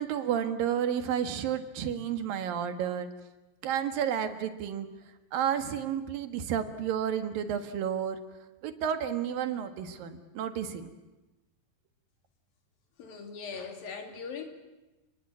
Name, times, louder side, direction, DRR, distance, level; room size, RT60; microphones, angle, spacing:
voice 1, 0.0-3.1 3.6-4.9 5.3-8.2 8.6-10.8, right 9 dB, 80° right, 9 dB, 3.3 m, -31 dB
voice 2, 13.0-14.4, left 5 dB, 85° left, 5 dB, 4.5 m, -40 dB
30.0 x 20.0 x 8.6 m, 1.1 s
omnidirectional pair, 4.0 m